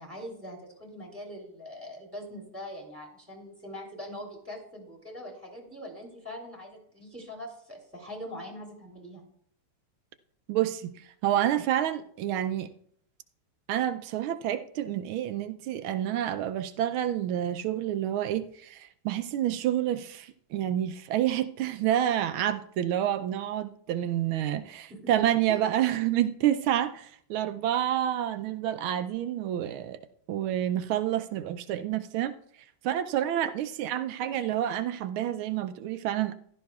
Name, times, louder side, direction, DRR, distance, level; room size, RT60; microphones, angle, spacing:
voice 1, 0.0-9.2 24.9-25.6, equal, 5° right, 3.0 m, -42 dB
voice 2, 10.5-12.7 13.7-30.0 30.3-32.3 32.8-36.3, right 11 dB, 80° right, 1.4 m, -28 dB
15.5 x 12.5 x 2.4 m
omnidirectional pair, 2.3 m